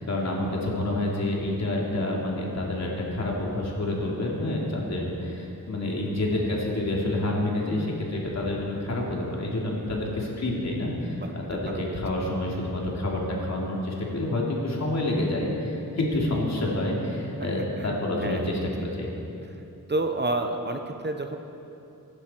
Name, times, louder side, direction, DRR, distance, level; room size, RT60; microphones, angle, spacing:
voice 1, 0.0-19.1, left 1 dB, 50° left, -3 dB, 3.1 m, -28 dB
voice 2, 11.1-12.0 17.4-17.5 17.8-17.9 18.2-18.6 19.4-19.6 19.9-21.4, right 2 dB, 30° right, 5 dB, 0.9 m, -30 dB
25.0 x 11.5 x 4.6 m, 2.8 s
wide cardioid pair, 145°, 33 cm